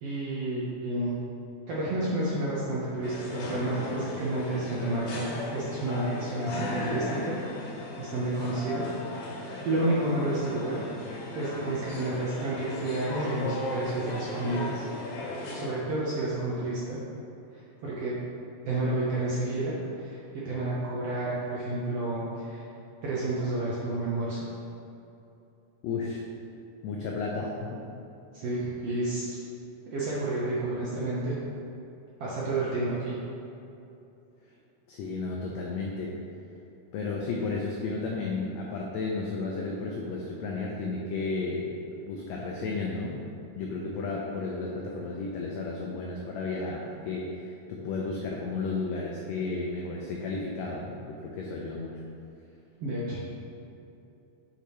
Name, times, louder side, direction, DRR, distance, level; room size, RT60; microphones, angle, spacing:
voice 1, 0.0-1.2 1.7-7.3 8.0-10.8 11.3-14.9 15.5-17.0 17.5-18.1 18.7-22.7 23.0-24.4 28.3-29.4 29.8-31.4 32.2-33.1 52.8-53.2, right 2 dB, 70° right, -7 dB, 1.5 m, -30 dB
sound 1, 3.0-15.6, left 2 dB, 70° left, 2.1 m, -36 dB
voice 2, 25.8-26.2 26.8-27.9 34.9-36.2 36.9-41.7 42.0-43.3 43.6-52.0, left 3 dB, 90° left, -2 dB, 1.5 m, -33 dB
6.5 x 5.6 x 3.0 m, 2.8 s
omnidirectional pair, 3.7 m